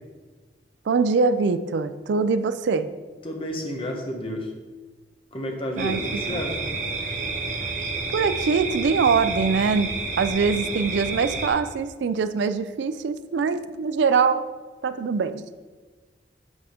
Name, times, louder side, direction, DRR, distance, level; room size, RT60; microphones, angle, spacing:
voice 1, 0.9-2.9 5.8-6.0 6.3-6.4 8.1-14.5 14.8-15.4, right 5 dB, 80° right, 12 dB, 0.4 m, -23 dB
voice 2, 3.2-4.5 5.3-6.6, equal, 30° left, 2 dB, 1.0 m, -30 dB
sound 1, 5.8-11.5, right 3 dB, 45° right, 0.9 m, -30 dB
8.2 x 3.6 x 5.0 m, 1.4 s
head